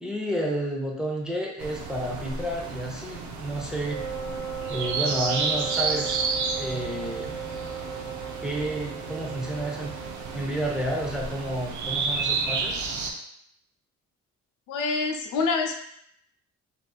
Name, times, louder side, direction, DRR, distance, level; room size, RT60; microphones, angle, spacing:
voice 1, 0.0-4.0 4.7-6.1 6.5-7.3 8.4-9.9 10.3-12.8, right 1 dB, ahead, -2 dB, 0.6 m, -30 dB
sound 1, 1.6-13.1, right 4 dB, 75° right, 0.5 m, -31 dB
Wind instrument woodwind instrument, 3.8-10.5, right 7 dB, 50° right, 1.0 m, -36 dB
voice 2, 14.7-15.8, left 4 dB, 80° left, 3 dB, 0.5 m, -26 dB
3.3 x 2.6 x 2.3 m, 0.73 s
cardioid pair, 90°, 30 cm